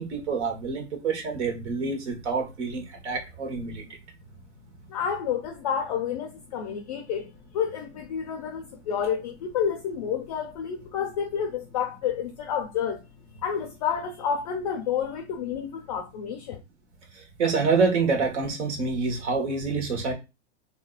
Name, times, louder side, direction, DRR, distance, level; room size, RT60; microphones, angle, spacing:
voice 1, 0.0-3.8 17.4-20.1, right 4 dB, 80° right, 1.3 m, -27 dB
voice 2, 4.9-13.0 13.4-16.6, left 7 dB, 35° left, 0.4 m, -30 dB
3.5 x 2.7 x 2.3 m
supercardioid pair, 170°, 34 cm